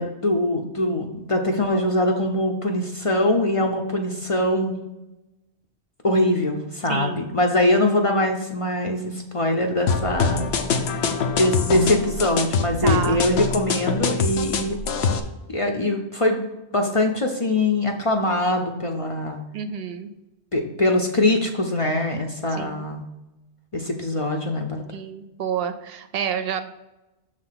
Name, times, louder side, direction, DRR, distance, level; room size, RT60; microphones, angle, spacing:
voice 1, 0.0-4.8 6.0-10.5 10.8-10.9 11.4-14.8 15.5-19.4 20.5-23.0 23.7-24.8, left 1 dB, 40° left, 2 dB, 0.6 m, -23 dB
voice 2, 6.9-7.3 12.8-13.2 19.5-20.1 22.5-22.9 24.9-26.7, right 7 dB, 70° right, 9 dB, 0.8 m, -29 dB
sound 1, 9.9-15.2, left 5 dB, 75° left, 0.9 m, -24 dB
6.8 x 3.3 x 5.7 m, 0.98 s
omnidirectional pair, 1.1 m